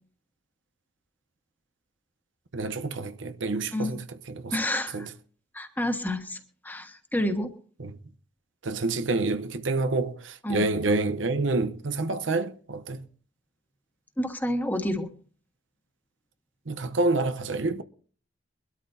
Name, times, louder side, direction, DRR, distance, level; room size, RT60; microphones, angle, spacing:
voice 1, 2.5-4.6 4.9-5.1 7.8-8.0 8.6-13.1 16.7-17.8, right 3 dB, 85° right, 0.9 m, -28 dB
voice 2, 4.5-5.1 5.5-6.4 6.6-7.5 10.4-10.6 14.2-15.1, left 1 dB, 10° left, 1.5 m, -29 dB
23.0 x 12.5 x 2.7 m
head